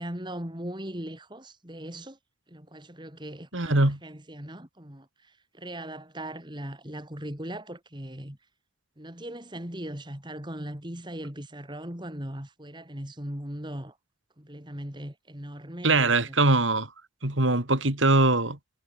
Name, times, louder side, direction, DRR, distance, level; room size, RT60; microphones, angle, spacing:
voice 1, 0.0-2.2 2.5-8.4 9.0-14.0 14.4-16.4, right 1 dB, 25° right, 3.4 m, -39 dB
voice 2, 3.5-4.0 15.8-16.9 17.2-18.6, right 2 dB, 85° right, 3.7 m, -22 dB
head